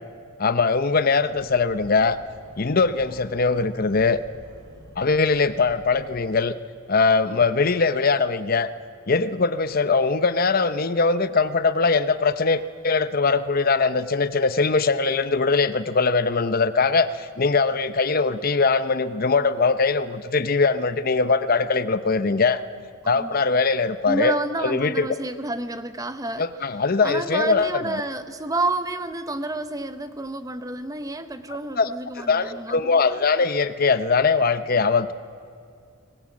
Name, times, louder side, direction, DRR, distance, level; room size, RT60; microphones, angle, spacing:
voice 1, 0.4-2.2 2.6-4.2 5.0-6.6 6.9-8.7 9.1-22.6 23.1-24.4 24.6-25.1 26.4-28.0 31.8-31.9 32.2-35.1, left 4 dB, 45° left, 12 dB, 0.7 m, -21 dB
sound 1, 1.3-6.2, equal, 55° right, 6.9 m, -48 dB
voice 2, 23.0-23.4 24.1-26.5 27.0-33.0, right 2 dB, 15° right, 10 dB, 0.9 m, -29 dB
23.5 x 19.5 x 8.6 m, 2.3 s
head